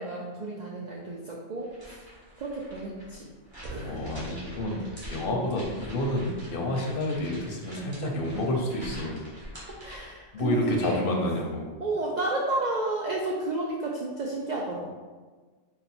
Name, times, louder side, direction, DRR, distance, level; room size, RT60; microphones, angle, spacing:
voice 1, 0.0-2.0 2.4-3.3 3.7-4.0 9.8-11.0 11.8-14.9, right 2 dB, 75° right, -3 dB, 0.4 m, -32 dB
sound 1, 1.6-11.1, equal, 20° right, 1.1 m, -46 dB
sound 2, 3.6-7.2, right 2 dB, 90° right, 1.0 m, -43 dB
voice 2, 3.8-9.2 10.3-11.7, left 1 dB, 55° left, -1 dB, 0.7 m, -29 dB
4.0 x 2.1 x 4.2 m, 1.4 s
omnidirectional pair, 1.3 m